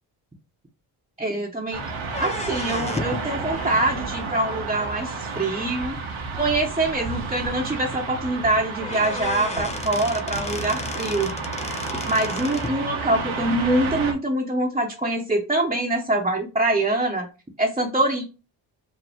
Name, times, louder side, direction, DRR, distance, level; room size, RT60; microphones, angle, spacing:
voice 1, 1.2-1.8 2.2-6.0 6.3-11.3 12.1-17.3 17.6-18.2, right 2 dB, 15° right, -3 dB, 0.9 m, -24 dB
sound 1, 1.7-14.1, right 4 dB, 75° right, 1.2 m, -31 dB
sound 2, 2.1-3.3 5.0-5.1 6.0-6.1 6.6-6.7 7.0-7.1 8.4-8.5 8.8-12.8, left 4 dB, 15° left, 0.4 m, -34 dB
5.2 x 2.1 x 3.5 m, 0.31 s
cardioid pair, 70°, 48 cm